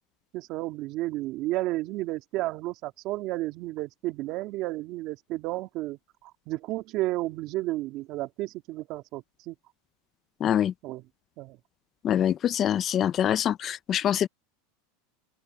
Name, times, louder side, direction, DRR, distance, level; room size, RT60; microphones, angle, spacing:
voice 1, 0.3-9.5 10.8-11.0 11.4-11.6, right 18 dB, 50° right, 2.7 m, -32 dB
voice 2, 10.4-10.7 12.0-14.3, left 10 dB, 30° left, 0.7 m, -24 dB
supercardioid pair, 135°, 0 cm